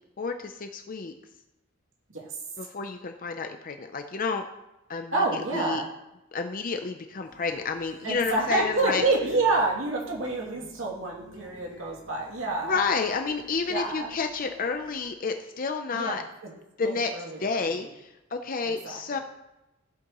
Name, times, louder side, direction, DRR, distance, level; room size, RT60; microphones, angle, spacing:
voice 1, 0.2-1.1 2.6-4.4 4.9-5.8 6.3-9.0 12.6-16.2 16.8-19.2, left 4 dB, 40° left, 6 dB, 0.5 m, -30 dB
voice 2, 5.1-5.9 8.0-12.8 13.7-14.1 15.9-16.5 16.8-17.9 18.6-19.2, right 2 dB, 70° right, -3 dB, 2.6 m, -28 dB
sound 1, 7.2-15.1, equal, 20° left, 3.5 m, -52 dB
14.5 x 8.4 x 3.0 m, 0.97 s
head